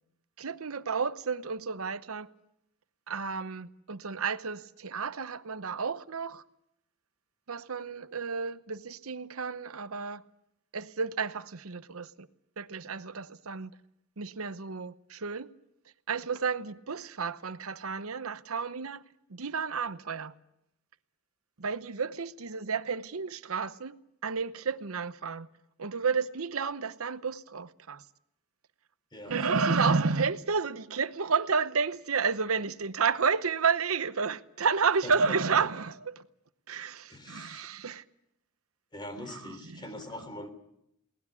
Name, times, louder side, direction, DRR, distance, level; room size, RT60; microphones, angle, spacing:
voice 1, 0.4-2.3 3.1-6.4 7.5-10.2 10.7-12.3 12.6-13.7 14.2-15.5 16.1-19.0 19.3-20.3 21.6-24.0 24.2-25.5 25.8-28.0 29.3-36.2 36.7-38.0 39.3-39.8, right 5 dB, 85° right, 0.9 m, -31 dB
voice 2, 29.1-30.0 35.0-35.6 37.1-37.7 38.9-40.5, left 1 dB, 20° left, 3.6 m, -42 dB
22.0 x 19.0 x 8.3 m
head